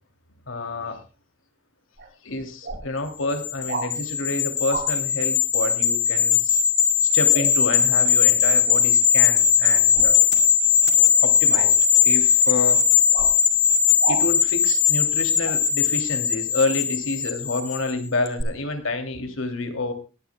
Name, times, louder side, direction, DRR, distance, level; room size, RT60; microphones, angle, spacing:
voice 1, 0.5-1.0 2.2-6.6 7.0-10.2 11.2-11.7 12.0-12.9 14.1-19.9, left 2 dB, 85° left, 7 dB, 2.8 m, -28 dB
sound 1, 2.0-2.1 2.6-2.8 3.7-3.9 4.7-4.9 7.3-7.5 9.9-10.2 11.5-11.7 13.1-13.3 14.0-14.2 15.4-15.6, right 3 dB, 60° right, 7.0 m, -30 dB
sound 2, 3.3-17.9 18.3-18.4, left 7 dB, 60° left, 3.5 m, -19 dB
22.5 x 11.0 x 2.3 m, 0.32 s
head